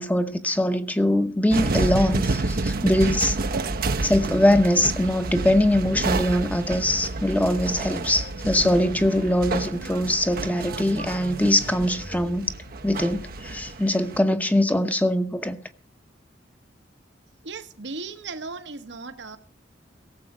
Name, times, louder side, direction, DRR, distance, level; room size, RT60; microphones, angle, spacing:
voice 1, 0.0-3.4 4.0-12.5 12.8-15.6, left 1 dB, 10° left, 0.9 m, -22 dB
sound 1, 1.5-14.2, right 3 dB, 55° right, 0.7 m, -29 dB
sound 2, 6.9-13.8, equal, 85° left, 4.7 m, -45 dB
voice 2, 17.4-19.4, right 3 dB, 70° right, 1.1 m, -36 dB
17.0 x 7.6 x 5.9 m
head